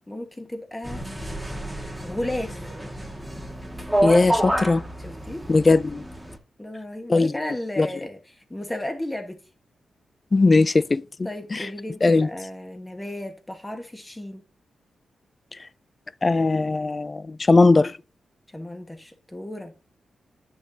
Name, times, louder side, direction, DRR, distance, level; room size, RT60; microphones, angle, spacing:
voice 1, 0.1-1.0 1.8-2.7 5.0-5.4 6.6-9.4 11.2-14.4 18.5-19.7, left 1 dB, 15° left, 1.5 m, -34 dB
sound 1, 0.8-6.4, right 1 dB, 5° right, 1.5 m, -29 dB
voice 2, 4.0-4.8 5.5-6.0 7.1-7.3 7.8-7.9 10.3-11.0 11.5-11.6 12.0-12.3 16.2-17.9, left 3 dB, 30° left, 0.3 m, -18 dB
10.0 x 6.2 x 2.8 m
cardioid pair, 85°, 0 cm